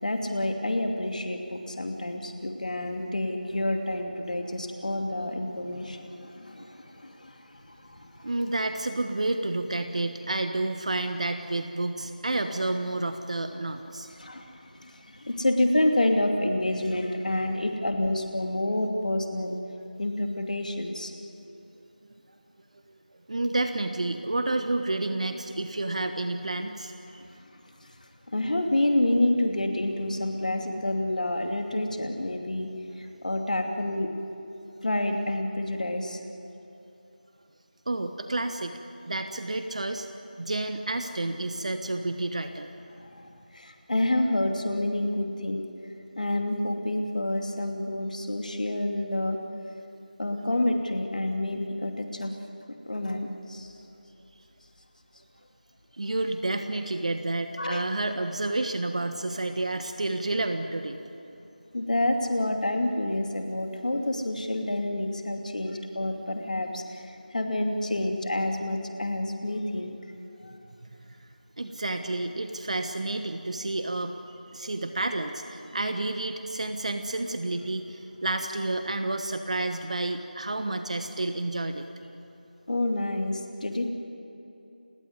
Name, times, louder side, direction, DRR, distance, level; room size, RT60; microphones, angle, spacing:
voice 1, 0.0-8.3 14.2-19.6 20.0-21.1 27.8-27.9 28.3-32.7 33.0-34.1 34.8-36.2 43.0-45.6 46.2-49.4 50.2-52.3 52.9-53.7 57.6-57.9 61.7-70.0 70.4-70.5 82.7-83.9, left 1 dB, 55° left, 3 dB, 2.7 m, -28 dB
voice 2, 8.2-14.1 23.3-27.2 37.9-38.8 39.1-40.1 40.4-42.7 50.1-50.2 55.9-61.0 67.7-67.8 71.6-74.2 74.5-81.9, right 2 dB, 45° right, 7 dB, 1.3 m, -30 dB
29.5 x 17.0 x 9.7 m, 2.8 s
figure-of-eight pair, 175°, 5 cm